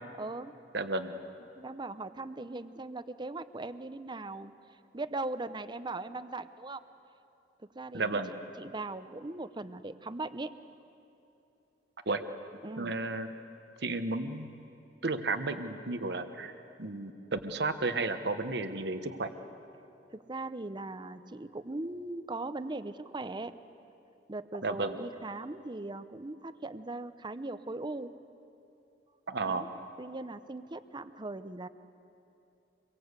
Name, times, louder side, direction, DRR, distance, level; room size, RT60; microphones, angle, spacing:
voice 1, 0.2-0.5 1.5-4.5 4.9-6.8 7.7-8.2 8.6-10.5 12.6-12.9 20.1-23.5 24.3-28.1 29.4-29.7 30.0-31.7, right 2 dB, 25° right, 12 dB, 0.8 m, -39 dB
voice 2, 0.7-1.2 7.9-8.3 12.1-12.2 12.8-13.3 13.8-14.5 15.0-16.5 16.8-19.3 24.6-25.0 29.3-29.7, right 3 dB, 65° right, 9 dB, 1.2 m, -33 dB
25.5 x 22.5 x 8.2 m, 2.8 s
head